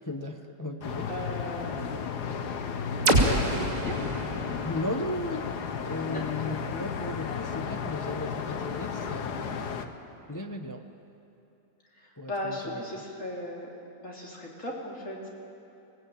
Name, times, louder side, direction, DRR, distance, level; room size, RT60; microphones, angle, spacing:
voice 1, 0.0-1.1 1.7-2.0 2.3-2.4 4.6-5.5 5.8-9.9 10.3-10.8 12.2-12.8, left 1 dB, 15° left, 4 dB, 0.7 m, -36 dB
sound 1, 0.8-9.9, left 6 dB, 90° left, 1.7 m, -34 dB
voice 2, 1.1-1.8 2.5-2.8 3.2-4.0 6.1-6.2 12.0-13.7 14.0-15.3, left 1 dB, 50° left, -2 dB, 3.2 m, -36 dB
sound 2, 3.1-6.9, right 1 dB, 55° right, 3.0 m, -29 dB
24.5 x 17.5 x 9.0 m, 2.8 s
omnidirectional pair, 1.7 m